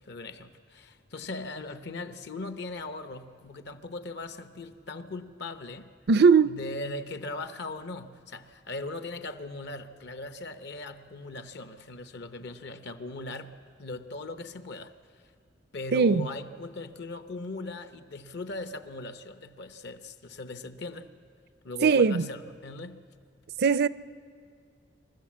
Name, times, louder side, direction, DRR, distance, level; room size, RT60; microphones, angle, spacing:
voice 1, 0.0-5.9 6.4-14.9 15.7-21.1 21.6-23.1, left 2 dB, 65° left, 0.9 m, -39 dB
voice 2, 6.1-6.5 15.9-16.3 21.8-22.2 23.6-23.9, right 5 dB, 60° right, 0.5 m, -19 dB
26.5 x 13.0 x 7.5 m
head